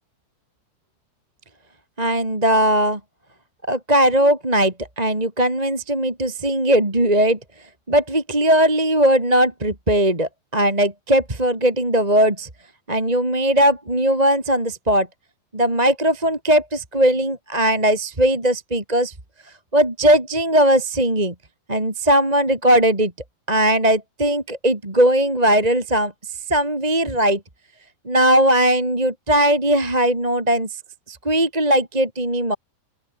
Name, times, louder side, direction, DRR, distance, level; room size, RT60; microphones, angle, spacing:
voice 1, 2.0-3.0 3.7-7.4 7.9-12.5 12.9-15.1 15.5-19.1 19.7-21.3 21.7-23.1 23.5-26.1 26.5-27.4 28.0-30.8 31.1-32.5, right 1 dB, 10° right, 2.9 m, -19 dB
open air
omnidirectional pair, 5.0 m